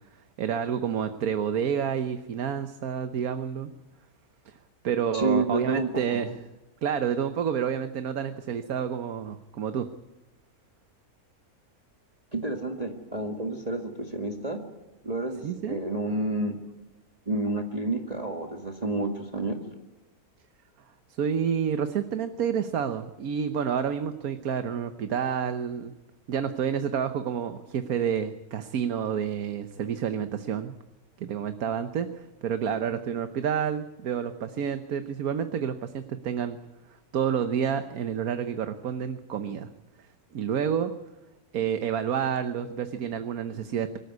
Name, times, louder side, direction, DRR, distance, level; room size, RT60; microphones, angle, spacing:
voice 1, 0.4-3.7 4.5-4.6 4.8-6.4 6.8-9.9 15.4-15.8 21.2-25.9 26.3-30.8 31.2-36.6 37.1-39.7 40.3-40.9 41.5-44.0, right 8 dB, 70° right, 9 dB, 1.4 m, -29 dB
voice 2, 5.1-6.0 12.3-14.6 15.0-16.6 17.3-19.6, right 2 dB, 25° right, 3 dB, 1.9 m, -29 dB
24.5 x 14.0 x 9.6 m, 1.1 s
omnidirectional pair, 1.6 m